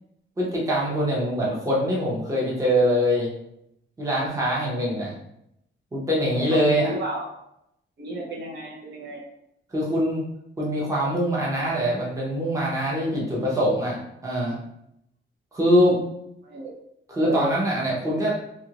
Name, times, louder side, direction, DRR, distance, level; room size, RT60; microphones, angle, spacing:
voice 1, 0.4-3.3 4.0-5.1 5.9-6.9 9.7-10.2 10.6-14.0 14.2-14.6 15.5-16.0 17.1-18.3, equal, 15° right, -5 dB, 0.7 m, -23 dB
voice 2, 6.6-7.3 8.0-9.2 16.4-16.7 17.2-17.5, right 2 dB, 60° right, -2 dB, 0.8 m, -32 dB
2.8 x 2.5 x 2.8 m, 0.78 s
wide cardioid pair, 165°, 20 cm